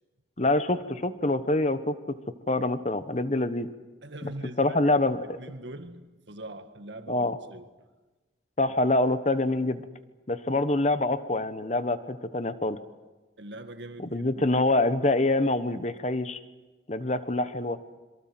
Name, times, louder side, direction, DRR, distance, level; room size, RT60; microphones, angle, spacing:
voice 1, 0.4-2.2 2.5-3.7 4.6-5.2 7.1-7.4 8.6-9.8 10.3-12.8 14.0-16.4 16.9-17.8, left 2 dB, 40° left, 1.2 m, -25 dB
voice 2, 4.0-4.9 5.2-7.7 13.4-14.4, right 1 dB, 75° right, 1.7 m, -42 dB
27.0 x 23.5 x 7.8 m
head